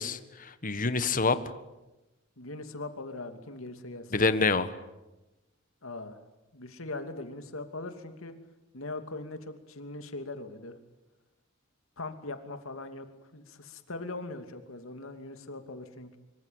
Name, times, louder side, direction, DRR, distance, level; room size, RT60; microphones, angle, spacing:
voice 1, 0.0-1.4 4.1-4.7, left 4 dB, 40° left, 11 dB, 1.6 m, -27 dB
voice 2, 2.4-4.1 5.8-6.2 6.5-8.3 8.7-10.8 12.0-13.1 13.3-16.2, left 2 dB, 80° left, 7 dB, 2.8 m, -40 dB
25.0 x 25.0 x 9.0 m, 1.0 s
head